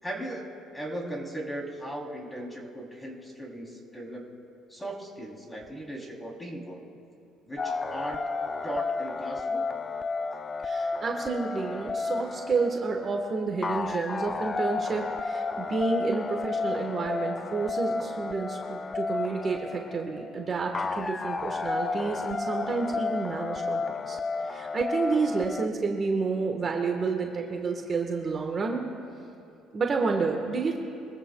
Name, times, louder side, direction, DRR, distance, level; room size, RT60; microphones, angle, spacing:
voice 1, 0.0-0.5 0.7-4.2 4.7-6.8 7.4-8.2 8.6-9.7, right 1 dB, 10° left, -1 dB, 3.1 m, -37 dB
sound 1, 7.6-25.7, left 4 dB, 30° left, 0.5 m, -32 dB
voice 2, 10.6-28.9 29.7-30.8, right 4 dB, 40° right, 2 dB, 1.3 m, -30 dB
23.5 x 15.0 x 2.3 m, 2.7 s
supercardioid pair, 85°, 0 cm